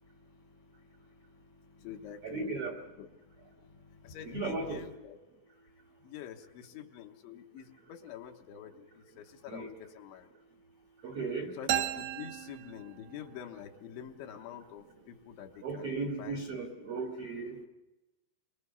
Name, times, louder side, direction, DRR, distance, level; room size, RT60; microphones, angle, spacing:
voice 1, 0.0-2.7 3.0-5.2 6.0-10.3 11.6-16.4 16.8-17.0, left 9 dB, 75° left, 3 dB, 3.4 m, -47 dB
voice 2, 2.2-2.7 4.2-4.9 9.5-9.8 11.0-11.5 15.6-17.6, right 3 dB, 60° right, 2 dB, 1.6 m, -36 dB
sound 1, 11.7-13.4, right 12 dB, 75° right, 2.2 m, -35 dB
25.0 x 20.5 x 6.9 m, 1.0 s
omnidirectional pair, 5.6 m